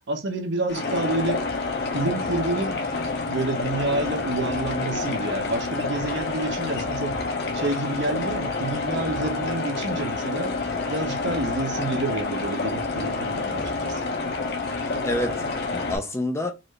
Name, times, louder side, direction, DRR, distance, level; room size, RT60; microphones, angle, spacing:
voice 1, 0.1-1.4 1.9-2.8 3.3-7.1 7.5-10.5 10.9-14.0, right 2 dB, 55° right, 1.0 m, -28 dB
sound 1, 0.7-16.0, left 3 dB, 50° left, 0.9 m, -28 dB
voice 2, 14.7-16.5, left 1 dB, 15° left, 0.5 m, -29 dB
4.0 x 2.7 x 3.2 m
head